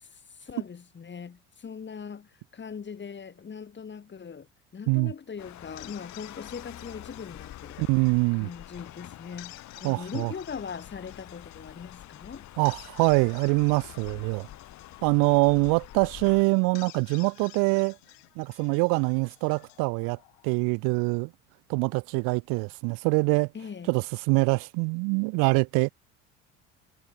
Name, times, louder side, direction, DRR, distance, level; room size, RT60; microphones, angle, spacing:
voice 1, 0.5-1.4 1.6-2.2 2.6-4.4 4.7-7.9 8.4-9.6 9.8-12.4 23.5-23.9, left 6 dB, 35° left, 4.3 m, -40 dB
sound 1, 5.4-16.4, left 13 dB, 55° left, 2.4 m, -47 dB
sound 2, 5.6-20.8, left 40 dB or more, 75° left, 3.3 m, -52 dB
voice 2, 7.8-8.5 9.8-10.3 12.6-14.5 15.0-18.0 18.4-20.2 20.4-21.3 21.7-23.5 23.9-25.9, right 32 dB, 75° right, 1.2 m, -24 dB
hypercardioid pair, 75°, 34 cm